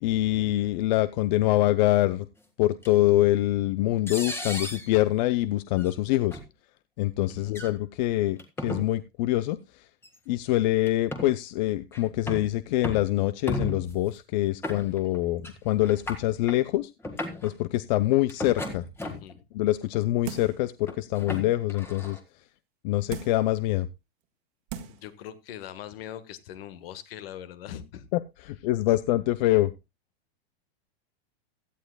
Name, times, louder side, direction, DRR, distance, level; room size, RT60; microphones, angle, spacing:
voice 1, 0.0-2.3 2.6-6.4 7.0-9.8 10.3-16.9 17.4-18.9 19.5-22.2 22.8-23.9 28.1-28.2 28.5-29.7, left 16 dB, 45° left, 16 dB, 0.5 m, -25 dB
sound 1, 2.8-2.9 4.1-4.9 5.8-5.9 6.3-6.4 7.5-7.7 8.4-8.8 10.0-10.1 10.9-11.3 11.9-12.5 12.8-13.1 13.5-14.0 14.6-15.2 15.4-15.6 15.8-16.6 17.0-17.5 18.3-19.3 19.9-20.3 20.9-22.2, left 1 dB, 5° left, 1.6 m, -35 dB
voice 2, 19.0-19.4 24.8-28.1, left 10 dB, 65° left, 14 dB, 1.5 m, -41 dB
sound 2, 20.3-20.7 21.2-21.3 23.1-23.5 24.2-24.3 24.7-25.1 25.5-25.6, right 10 dB, 50° right, 1.6 m, -38 dB
16.5 x 11.5 x 2.2 m, 0.23 s
hypercardioid pair, 140°, 32 cm